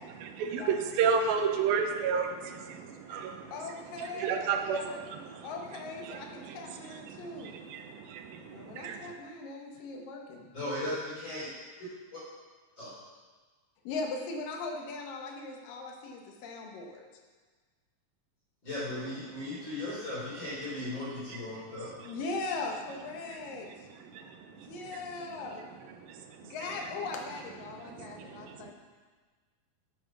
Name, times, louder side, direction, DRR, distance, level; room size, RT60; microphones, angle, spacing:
voice 1, 0.0-9.1 19.3-19.7 21.3-21.4 22.0-22.2 23.3-26.7 27.7-28.7, right 6 dB, 90° right, 5 dB, 2.7 m, -34 dB
voice 2, 3.5-5.0 5.4-7.6 8.5-10.5 13.8-17.1 22.0-23.9 24.5-25.6 26.4-28.7, left 3 dB, 75° left, 1 dB, 2.9 m, -39 dB
voice 3, 10.5-11.5 12.8-12.9 18.6-21.9 26.6-26.7, left 1 dB, 35° left, -10 dB, 4.1 m, -37 dB
9.0 x 8.4 x 6.0 m, 1.4 s
omnidirectional pair, 4.1 m